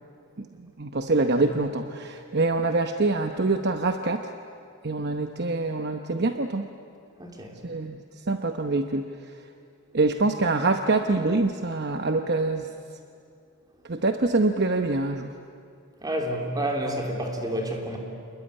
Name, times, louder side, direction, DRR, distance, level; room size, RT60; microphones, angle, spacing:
voice 1, 0.4-4.3 4.8-6.6 7.6-8.0 8.3-9.1 9.9-12.7 13.9-15.3, right 3 dB, 50° right, 6 dB, 0.9 m, -25 dB
voice 2, 7.2-7.5 16.0-18.0, right 1 dB, 15° right, 1 dB, 3.4 m, -29 dB
28.5 x 21.5 x 9.9 m, 2.4 s
head